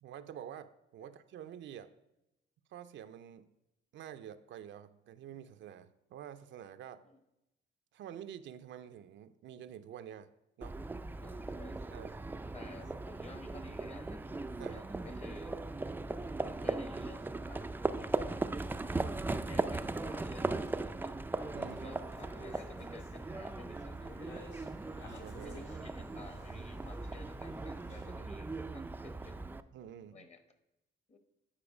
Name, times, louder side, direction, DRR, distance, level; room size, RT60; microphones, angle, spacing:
voice 1, 0.0-1.9 2.7-3.5 3.9-7.0 7.9-10.3 10.6-10.8 11.9-12.1 12.8-12.9 14.6-14.8 21.5-21.9 25.2-25.9 29.7-30.3, right 10 dB, 70° right, 11 dB, 0.5 m, -48 dB
Livestock farm animals working animals, 10.6-29.6, right 2 dB, 10° right, 0.3 m, -38 dB
voice 2, 11.2-12.0 12.5-14.2 14.6-15.5 16.4-18.9 19.3-21.2 21.8-24.7 25.1-29.4 30.1-30.4 31.1-31.2, left 4 dB, 35° left, 8 dB, 1.0 m, -53 dB
sound 1, 21.4-28.1, left 2 dB, 70° left, 1.9 m, -56 dB
8.8 x 4.4 x 5.0 m, 0.89 s
cardioid pair, 90°, 20 cm